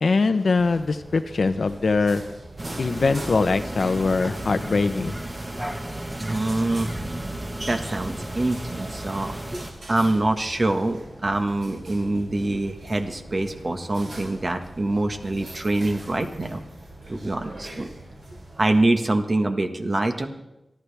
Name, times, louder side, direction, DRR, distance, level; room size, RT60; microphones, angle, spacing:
voice 1, 0.0-2.2 2.8-5.2, left 4 dB, 75° left, 10 dB, 0.8 m, -22 dB
sound 1, 0.6-18.8, right 1 dB, 80° right, 6.9 m, -42 dB
sound 2, 2.6-9.7, right 1 dB, 25° right, 1.4 m, -33 dB
voice 2, 6.2-6.9 7.7-9.6 9.9-16.6 17.1-17.9 18.6-20.3, right 2 dB, 40° right, 5 dB, 1.5 m, -25 dB
28.0 x 11.5 x 3.5 m, 0.92 s
wide cardioid pair, 100°, 0 cm